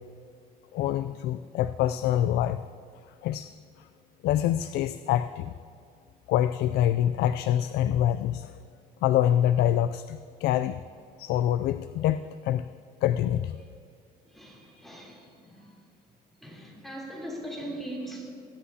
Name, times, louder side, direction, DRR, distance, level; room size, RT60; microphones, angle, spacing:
voice 1, 0.7-2.6 3.2-3.5 3.8-3.9 4.2-5.5 6.3-8.5 9.0-10.8 11.2-12.7 13.0-13.6, left 11 dB, 75° left, 12 dB, 0.4 m, -25 dB
voice 2, 14.2-15.9 16.4-18.3, right 1 dB, ahead, -4 dB, 3.3 m, -40 dB
22.0 x 10.0 x 2.8 m, 2.4 s
cardioid pair, 110°, 17 cm